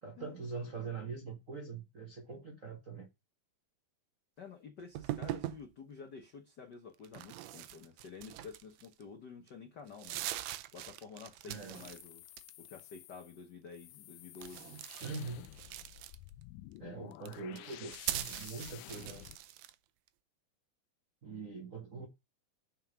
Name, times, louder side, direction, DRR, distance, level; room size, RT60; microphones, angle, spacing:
voice 1, 0.0-3.1 11.5-11.8 15.0-15.5 16.8-19.3 21.2-22.1, right 4 dB, 55° right, 0.9 m, -43 dB
voice 2, 4.4-10.3 10.7-12.2 12.6-14.8, left 5 dB, 70° left, 1.0 m, -50 dB
sound 1, 5.0-5.6 7.0-9.0 9.5-9.6 9.9-12.0 12.3-12.8 14.4-16.4 17.1-19.8, right 14 dB, 75° right, 1.7 m, -42 dB
sound 2, 11.7-19.4, left 15 dB, 85° left, 2.2 m, -52 dB
6.6 x 5.8 x 6.0 m
omnidirectional pair, 3.6 m